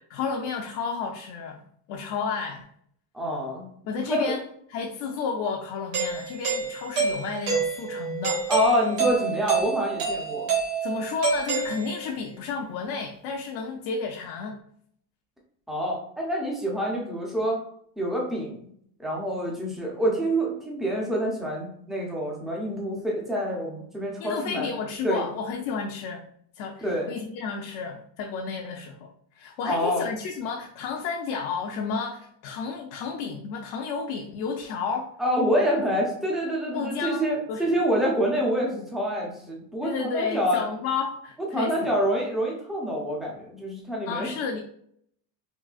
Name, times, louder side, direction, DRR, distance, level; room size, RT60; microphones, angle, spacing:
voice 1, 0.1-1.6 1.9-2.7 3.8-4.4 4.7-8.4 10.8-14.6 24.2-26.2 26.5-29.1 29.3-35.1 36.7-37.7 39.8-41.7 44.1-44.6, left 5 dB, 70° left, 1 dB, 0.6 m, -31 dB
voice 2, 3.1-3.7 4.1-4.3 8.5-10.5 15.7-17.6 18.0-18.6 19.0-24.7 25.0-25.3 26.8-27.1 29.6-30.0 35.2-40.6 41.5-44.3, equal, ahead, -2 dB, 0.4 m, -27 dB
Doorbell, 5.9-12.3, right 5 dB, 85° right, 1.5 m, -28 dB
3.8 x 2.6 x 2.4 m, 0.66 s
cardioid pair, 160°, 42 cm